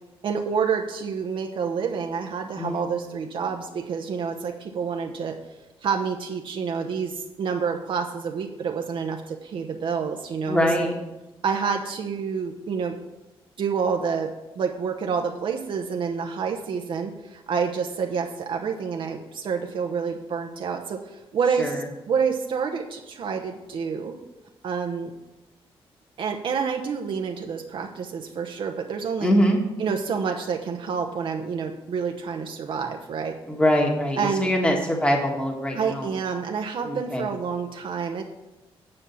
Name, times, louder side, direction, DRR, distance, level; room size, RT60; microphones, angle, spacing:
voice 1, 0.2-5.4 5.8-10.7 11.4-13.0 13.6-14.3 14.6-21.7 22.1-24.2 24.6-25.1 26.2-29.3 29.8-33.4 34.2-34.5 35.7-38.2, right 6 dB, 60° right, 3 dB, 0.8 m, -28 dB
voice 2, 10.5-10.9 21.6-21.8 29.2-29.6 33.5-36.1 36.8-37.3, equal, 10° left, 1 dB, 1.5 m, -23 dB
9.8 x 5.4 x 7.0 m, 1.0 s
cardioid pair, 125°, 10 cm